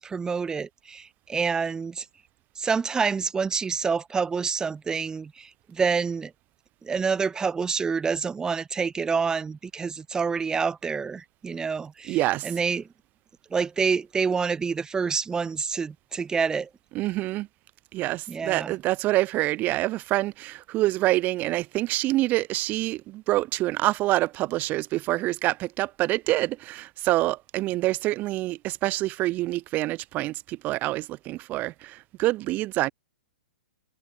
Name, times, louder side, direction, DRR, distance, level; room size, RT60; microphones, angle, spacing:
voice 1, 0.0-2.0 2.6-6.3 6.8-12.2 12.4-12.9 13.5-16.7 18.3-18.7, right 5 dB, 10° right, 1.3 m, -27 dB
voice 2, 12.1-12.5 16.9-17.5 17.9-32.9, right 17 dB, 30° right, 1.2 m, -26 dB
figure-of-eight pair, 110°, 6 cm